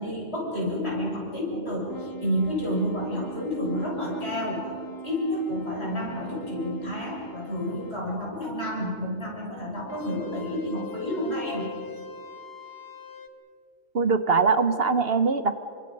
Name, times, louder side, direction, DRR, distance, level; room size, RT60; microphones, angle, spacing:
voice 1, 0.0-4.7 5.0-11.7, equal, 60° left, -3 dB, 7.2 m, -30 dB
sound 1, 1.9-8.0 9.9-13.3, equal, 20° left, 0.9 m, -41 dB
voice 2, 13.9-15.6, right 4 dB, 55° right, 11 dB, 1.1 m, -22 dB
29.0 x 25.0 x 5.4 m, 2.4 s
omnidirectional pair, 1.3 m